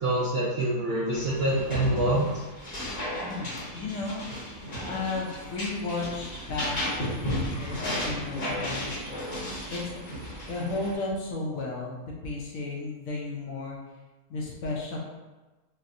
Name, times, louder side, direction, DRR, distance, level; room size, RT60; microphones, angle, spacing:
voice 1, 0.0-2.2, right 1 dB, 75° right, -6 dB, 0.5 m, -26 dB
sound 1, 1.1-10.9, left 1 dB, 35° left, 0.7 m, -34 dB
voice 2, 3.2-4.6 4.9-8.9 9.7-10.0 10.5-13.8 14.3-15.0, left 3 dB, 70° left, -2 dB, 0.9 m, -34 dB
4.1 x 2.1 x 2.5 m, 1.2 s
omnidirectional pair, 1.7 m